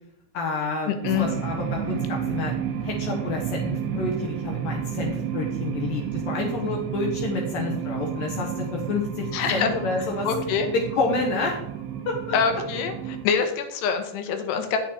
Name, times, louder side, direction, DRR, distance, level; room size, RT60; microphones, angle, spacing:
voice 1, 0.3-2.5 2.8-10.3 10.7-11.6 11.9-12.6, left 3 dB, 65° left, 0 dB, 2.4 m, -29 dB
voice 2, 0.9-1.3 9.3-9.7 10.2-10.7 12.3-14.8, left 6 dB, 85° left, 7 dB, 3.1 m, -25 dB
sound 1, 1.0-13.2, right 9 dB, 85° right, 2.9 m, -31 dB
9.2 x 7.3 x 4.1 m, 0.79 s
omnidirectional pair, 4.8 m